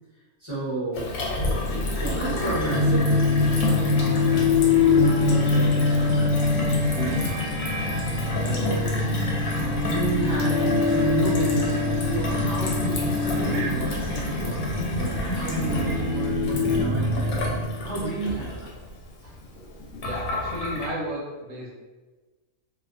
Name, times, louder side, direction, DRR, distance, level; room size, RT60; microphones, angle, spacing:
voice 1, 0.1-1.2 1.4-7.7 8.0-9.1 9.4-18.7 19.2-19.3, right 2 dB, 30° left, -10 dB, 0.6 m, -32 dB
Gurgling / Water tap faucet / Sink (filling or washing), 0.9-20.9, left 2 dB, 75° left, 1.0 m, -30 dB
sound 1, 2.7-17.9, left 3 dB, 90° right, 1.1 m, -24 dB
voice 2, 20.0-21.7, equal, 70° right, -3 dB, 0.9 m, -33 dB
2.5 x 2.1 x 2.4 m, 1.2 s
omnidirectional pair, 1.5 m